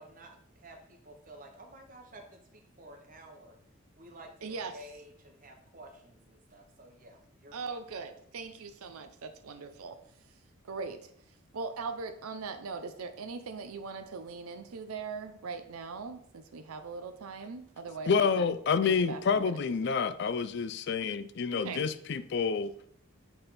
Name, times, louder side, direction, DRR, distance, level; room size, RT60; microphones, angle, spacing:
voice 1, 0.0-3.6 4.0-7.8, right 1 dB, 40° right, 4 dB, 0.9 m, -52 dB
voice 2, 4.4-4.7 7.5-10.0 10.6-11.1 11.5-18.1 18.4-18.5 18.8-19.6 21.5-21.8, right 4 dB, 90° right, 7 dB, 0.5 m, -40 dB
voice 3, 18.1-22.7, left 5 dB, 50° left, 13 dB, 0.4 m, -28 dB
7.9 x 3.5 x 4.1 m, 0.67 s
head